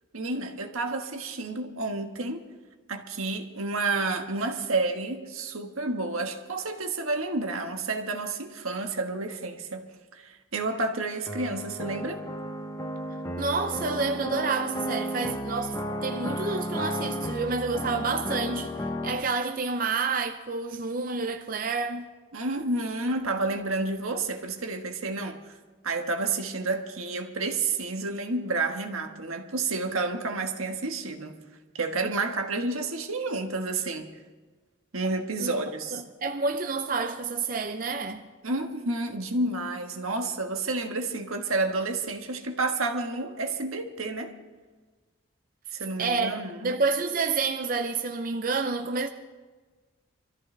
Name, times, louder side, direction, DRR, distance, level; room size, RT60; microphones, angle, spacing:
voice 1, 0.1-2.4 2.9-9.9 10.1-12.2 22.3-25.6 25.8-31.3 31.7-34.1 34.9-36.0 38.4-44.3 45.7-46.7, right 3 dB, 85° right, 1.5 m, -30 dB
sound 1, 11.3-19.2, equal, 15° left, 0.8 m, -33 dB
voice 2, 13.4-22.1 35.4-35.5 35.9-38.2 46.0-49.1, right 4 dB, 40° right, 0.6 m, -29 dB
24.0 x 14.0 x 3.4 m
head